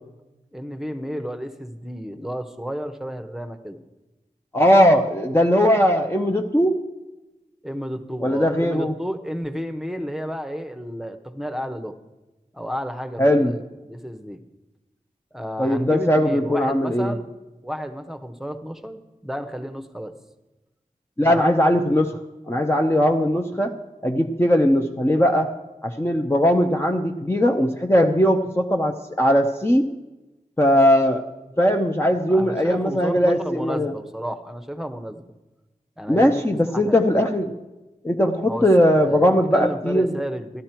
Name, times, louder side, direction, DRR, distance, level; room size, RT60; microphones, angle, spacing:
voice 1, 0.5-3.8 7.6-11.9 12.5-14.4 15.3-17.3 17.6-20.1 21.2-21.6 32.3-35.2 36.0-37.0 38.4-38.6 39.0-39.2 39.5-40.6, equal, 5° right, 8 dB, 1.0 m, -32 dB
voice 2, 4.5-6.7 8.2-8.9 13.2-13.5 15.6-17.1 21.2-22.1 22.5-23.7 24.0-25.5 25.8-29.9 30.6-31.2 31.6-33.9 36.1-37.5 38.0-40.1, equal, 15° left, 2 dB, 0.8 m, -19 dB
13.0 x 11.5 x 4.5 m, 1.1 s
wide cardioid pair, 50°, 14 cm